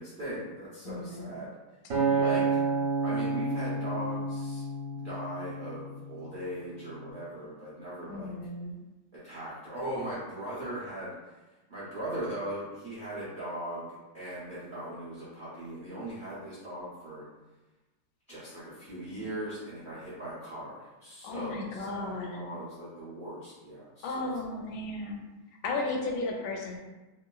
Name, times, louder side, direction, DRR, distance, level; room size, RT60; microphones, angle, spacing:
voice 1, 0.0-1.5 2.2-2.6 3.0-4.6 4.9-8.3 9.1-11.1 11.7-13.9 14.1-17.2 18.3-24.3, right 1 dB, 75° right, -10 dB, 0.4 m, -39 dB
voice 2, 0.8-1.3 2.1-2.7 8.1-8.8 21.2-22.5 24.0-25.2 25.6-26.8, left 2 dB, 90° left, 0 dB, 1.3 m, -35 dB
Acoustic guitar, 1.9-6.2 6.8-7.1, right 4 dB, 55° right, 1.0 m, -30 dB
3.0 x 2.6 x 2.2 m, 1.1 s
omnidirectional pair, 2.0 m